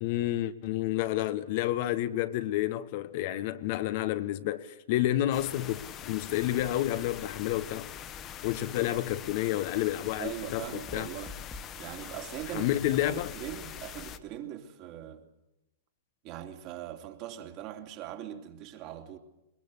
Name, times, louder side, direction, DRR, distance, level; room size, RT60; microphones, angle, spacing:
voice 1, 0.0-7.9 8.4-11.1 12.5-13.3, left 14 dB, 50° left, 1.2 m, -30 dB
sound 1, 5.3-14.2, left 9 dB, 30° left, 1.5 m, -43 dB
voice 2, 10.2-11.4 11.8-12.7 13.0-15.2 16.2-19.2, right 11 dB, 40° right, 3.2 m, -41 dB
sound 2, 10.8-14.1, left 2 dB, 10° left, 1.9 m, -49 dB
22.5 x 22.5 x 8.2 m
figure-of-eight pair, 105°, 0 cm